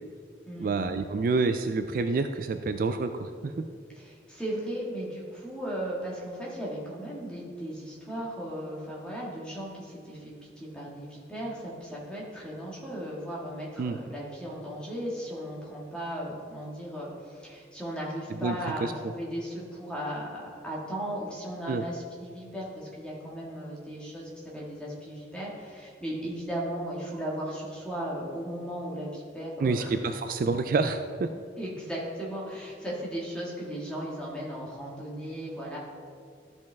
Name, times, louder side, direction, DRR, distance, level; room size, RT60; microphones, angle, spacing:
voice 1, 0.6-3.5 13.8-14.0 18.3-18.9 21.7-21.9 29.6-31.3, right 4 dB, 50° right, 8 dB, 0.3 m, -28 dB
voice 2, 3.9-30.0 31.6-35.8, equal, 5° left, -5 dB, 1.8 m, -36 dB
12.5 x 5.4 x 3.5 m, 2.2 s
head